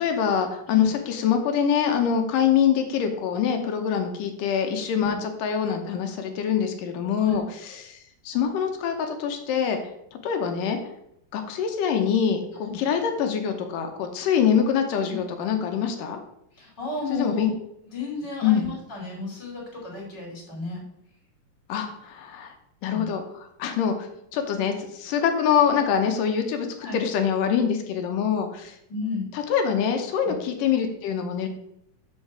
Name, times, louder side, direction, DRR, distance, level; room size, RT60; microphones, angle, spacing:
voice 1, 0.0-7.4 7.8-9.8 10.1-10.8 11.3-16.2 17.1-17.5 18.4-18.7 21.7-22.5 22.8-28.8 29.3-31.5, left 8 dB, 75° left, 5 dB, 2.4 m, -24 dB
voice 2, 16.5-17.5 17.9-20.8 22.8-23.1 26.8-27.0 28.9-29.2 30.2-30.3, left 4 dB, 30° left, -3 dB, 2.9 m, -33 dB
6.4 x 5.1 x 6.0 m, 0.76 s
omnidirectional pair, 4.2 m